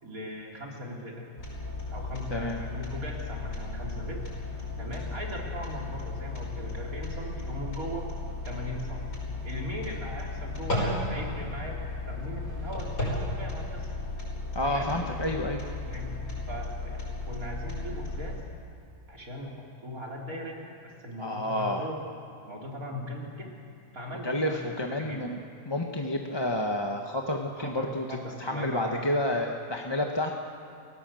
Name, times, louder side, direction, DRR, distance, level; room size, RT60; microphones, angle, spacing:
voice 1, 0.0-1.3 1.9-4.2 4.8-8.1 8.4-9.1 9.4-13.9 14.6-14.9 15.9-16.1 16.5-18.4 19.1-22.0 22.5-23.5 23.9-25.2 27.6-29.1, equal, 75° right, -2 dB, 4.3 m, -39 dB
sound 1, 1.4-18.4, left 2 dB, 75° left, 6.4 m, -35 dB
voice 2, 14.5-15.6 21.2-21.9 24.2-25.4 25.6-30.3, left 1 dB, 20° left, 1 dB, 1.2 m, -30 dB
29.5 x 18.0 x 7.7 m, 2.5 s
omnidirectional pair, 1.5 m